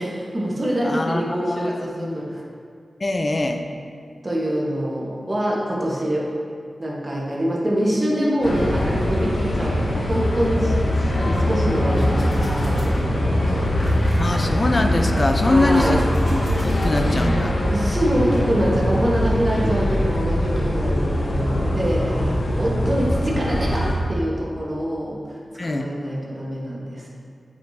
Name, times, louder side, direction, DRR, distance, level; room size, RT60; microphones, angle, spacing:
voice 1, 0.0-2.4 4.2-6.3 6.8-10.7 11.1-13.6 15.4-16.0 17.7-27.1, equal, 35° right, -4 dB, 1.3 m, -25 dB
voice 2, 0.8-1.7 2.0-2.2 3.0-3.6 14.2-17.6 22.2-23.1 25.6-25.9, left 2 dB, 40° left, 5 dB, 0.5 m, -24 dB
sound 1, 8.4-24.0, left 1 dB, 90° left, 1.0 m, -22 dB
sound 2, 11.0-18.5, left 1 dB, 60° left, 1.6 m, -34 dB
8.5 x 4.9 x 2.8 m, 2.2 s
cardioid pair, 60°, 0 cm